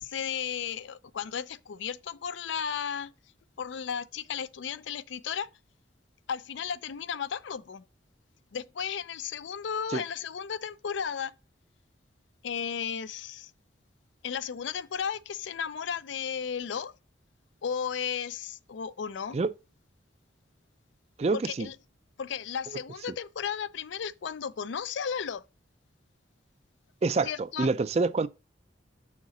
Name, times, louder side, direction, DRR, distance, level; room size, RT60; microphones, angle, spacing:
voice 1, 0.0-3.1 3.6-5.5 6.3-7.8 8.5-11.3 12.4-13.5 14.2-16.9 17.6-19.4 21.3-21.7 22.2-25.4 27.2-27.7, left 7 dB, 75° left, 0.4 m, -34 dB
voice 2, 21.2-21.7 27.0-28.3, right 3 dB, 35° right, 0.3 m, -27 dB
6.6 x 4.1 x 4.9 m
head